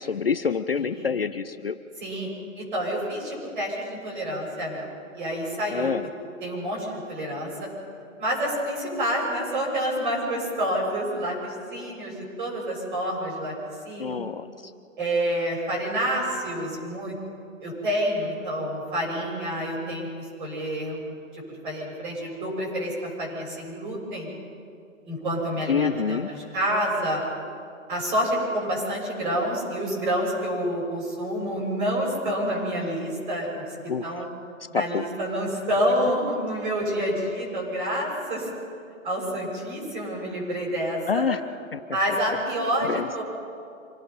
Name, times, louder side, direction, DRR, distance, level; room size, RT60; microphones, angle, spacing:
voice 1, 0.0-1.8 5.7-6.1 14.0-14.7 25.7-26.3 33.9-34.3 34.7-35.1 41.1-41.4 41.7-41.8 42.9-43.2, left 6 dB, 45° left, 11 dB, 0.6 m, -27 dB
voice 2, 2.6-5.9 6.4-7.7 8.2-13.5 13.8-14.2 15.0-17.1 17.6-24.3 25.1-27.2 27.9-33.6 34.0-34.3 34.7-38.5 39.0-41.3 41.9-43.2, equal, 35° right, -2 dB, 7.0 m, -28 dB
26.5 x 18.0 x 5.5 m, 2.5 s
hypercardioid pair, 180°, 41 cm